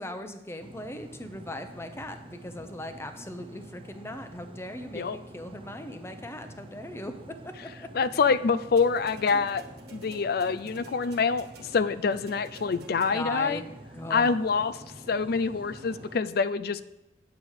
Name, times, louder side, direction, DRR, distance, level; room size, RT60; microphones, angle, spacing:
voice 1, 0.0-7.1 7.4-7.5 7.8-7.9 9.3-9.4 13.1-13.7 13.9-14.3, left 1 dB, 15° left, 7 dB, 0.8 m, -39 dB
sound 1, 0.6-16.2, right 1 dB, 30° right, 0.7 m, -47 dB
voice 2, 7.9-9.6 9.9-11.5 11.7-13.6 14.1-14.7 15.1-16.8, left 5 dB, 60° left, 15 dB, 0.5 m, -26 dB
sound 2, 8.8-13.5 14.5-14.6, right 2 dB, 65° right, 1.5 m, -51 dB
9.1 x 8.0 x 4.9 m, 0.92 s
head